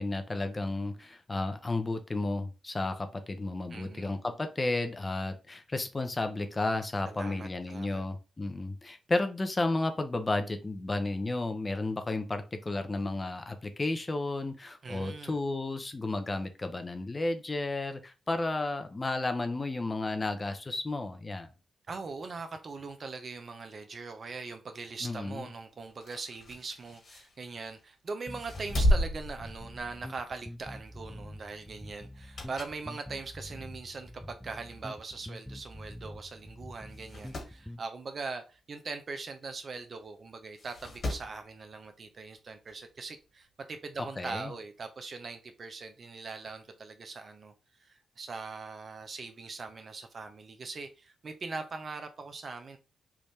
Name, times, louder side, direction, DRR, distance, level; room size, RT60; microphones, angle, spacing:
voice 1, 0.0-21.5 25.0-25.5 44.2-44.5, left 2 dB, 30° left, 0.8 m, -32 dB
voice 2, 3.7-4.2 7.1-8.0 14.8-15.4 21.9-47.5 47.8-52.8, right 4 dB, 55° right, 0.7 m, -41 dB
sound 1, 25.9-27.8 28.3-30.2 30.6-30.8 32.1-32.9 33.3-33.4 34.3-34.4 34.7-34.8 34.9-35.0 35.9-36.1 36.4-36.5 36.9-37.6 39.4-39.5 40.5-41.4 42.7-42.8, equal, 60° left, 1.9 m, -33 dB
sound 2, 28.3-37.8, left 1 dB, 5° left, 0.4 m, -46 dB
3.5 x 2.6 x 3.2 m
supercardioid pair, 45°, 0 cm